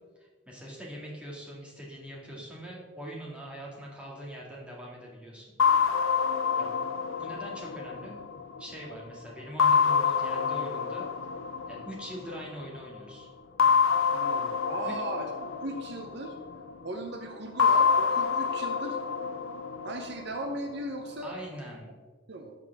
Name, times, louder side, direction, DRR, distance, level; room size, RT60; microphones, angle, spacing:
voice 1, 0.2-5.5 6.0-6.2 6.5-6.7 7.2-8.2 8.6-11.1 11.7-13.3 14.8-14.9 21.2-21.9, equal, 5° right, -4 dB, 2.0 m, -42 dB
sound 1, 5.6-8.9 9.6-12.5 13.6-16.7 17.6-20.7, left 6 dB, 80° left, 0.6 m, -27 dB
voice 2, 14.1-16.4 16.8-19.0 19.8-21.3 22.3-22.5, right 1 dB, 55° right, 4 dB, 0.8 m, -37 dB
12.5 x 7.0 x 3.5 m, 1.4 s
head